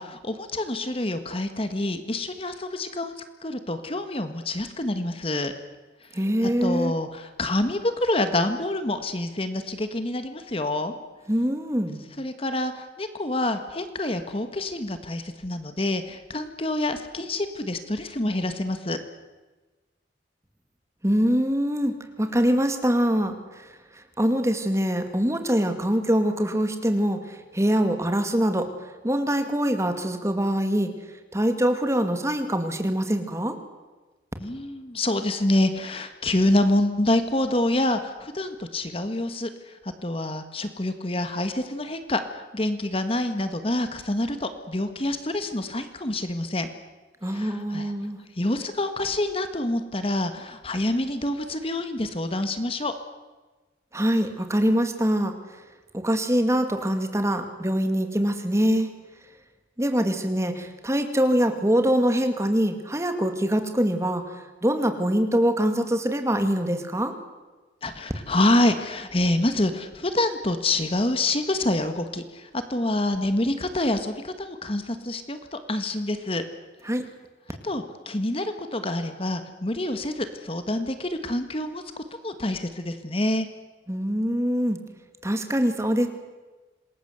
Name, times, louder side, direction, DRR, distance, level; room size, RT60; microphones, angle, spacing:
voice 1, 0.0-3.1 3.4-5.5 6.4-10.9 12.2-19.0 34.4-46.7 47.3-47.9 48.4-52.9 67.8-76.4 77.6-81.8 82.2-83.5, left 1 dB, 30° left, 9 dB, 1.6 m, -27 dB
voice 2, 6.1-6.9 11.3-12.0 21.0-21.9 22.2-28.7 29.0-30.9 31.3-33.6 47.2-48.2 53.9-55.3 55.9-58.9 59.8-67.1 76.8-77.0 83.9-84.8 85.2-86.1, equal, 15° right, 7 dB, 2.3 m, -24 dB
27.0 x 20.5 x 8.1 m, 1.2 s
head